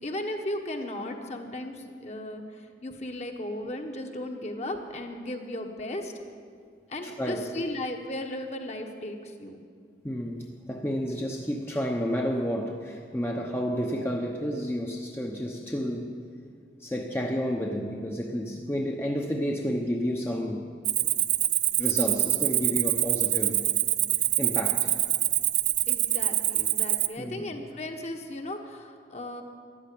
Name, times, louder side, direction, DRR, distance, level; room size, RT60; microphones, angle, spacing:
voice 1, 0.0-6.1 6.9-9.6 25.9-29.4, left 1 dB, 40° left, 4 dB, 1.3 m, -36 dB
voice 2, 7.0-7.4 10.0-16.1 16.8-20.7 21.8-23.6 24.4-24.9 27.2-27.6, equal, 15° left, 0 dB, 0.8 m, -30 dB
Cricket, 20.8-27.1, right 14 dB, 45° right, 0.4 m, -25 dB
14.0 x 11.5 x 8.5 m, 2.1 s
head